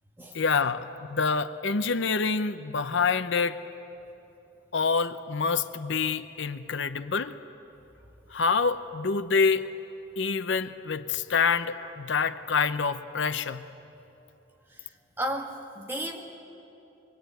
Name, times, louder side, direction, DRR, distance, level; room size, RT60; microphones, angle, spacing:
voice 1, 0.3-3.6 4.7-7.4 8.3-9.7 10.2-13.6, left 5 dB, 75° left, 11 dB, 0.7 m, -27 dB
voice 2, 15.2-16.2, equal, 10° right, 0 dB, 2.1 m, -33 dB
24.5 x 22.5 x 9.2 m, 3.0 s
head